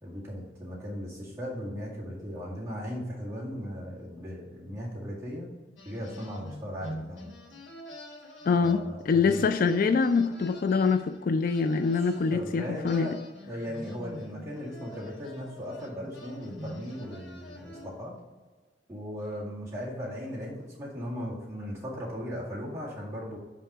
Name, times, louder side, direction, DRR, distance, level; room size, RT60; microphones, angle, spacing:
voice 1, 0.0-5.5 5.8-7.3 8.6-9.5 11.9-13.1 13.5-18.1 18.9-23.4, equal, 15° right, 1.9 m, -37 dB
saxophone reverb, 5.8-9.0 9.3-12.4 12.9-18.1, equal, 85° left, 1.2 m, -46 dB
voice 2, 8.5-13.1, left 5 dB, 50° left, 0.3 m, -25 dB
5.6 x 4.7 x 4.9 m
head